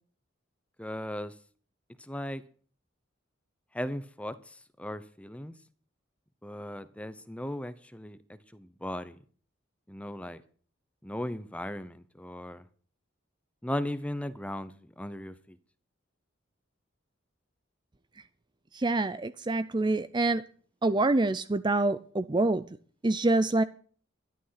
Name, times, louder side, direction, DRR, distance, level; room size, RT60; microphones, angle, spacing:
voice 1, 0.8-1.3 2.0-2.4 3.7-5.5 6.4-8.2 8.5-9.2 9.9-10.4 11.0-12.6 13.6-15.6, left 1 dB, 5° left, 0.8 m, -37 dB
voice 2, 18.7-20.4 20.8-22.6 23.0-23.6, right 2 dB, 25° right, 0.5 m, -26 dB
12.0 x 11.5 x 5.8 m
head